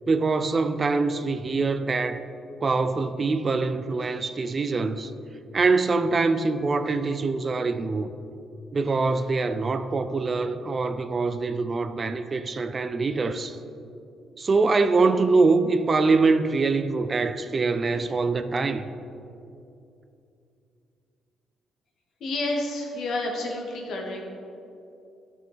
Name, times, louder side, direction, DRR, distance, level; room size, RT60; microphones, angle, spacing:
voice 1, 0.1-2.2 2.6-5.1 5.5-8.1 8.7-13.6 14.4-18.9, right 3 dB, 35° right, 0.4 m, -24 dB
voice 2, 22.2-24.2, left 2 dB, 70° left, 1.4 m, -29 dB
12.0 x 6.2 x 3.4 m
cardioid pair, 90°, 0 cm